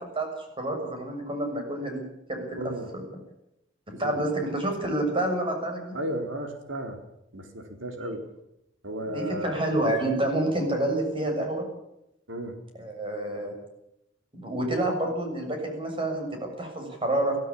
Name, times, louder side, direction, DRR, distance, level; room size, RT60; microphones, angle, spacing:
voice 1, 0.6-2.0 2.3-2.6 2.9-3.0 3.9-6.0 9.1-11.6 12.8-13.5 14.3-17.4, right 1 dB, 30° right, 3 dB, 7.1 m, -28 dB
voice 2, 2.6-2.9 3.9-4.2 5.9-7.0 7.3-8.3 8.8-9.6 12.3-12.5, right 1 dB, 85° right, 4 dB, 4.3 m, -34 dB
23.5 x 16.0 x 8.7 m, 0.82 s
head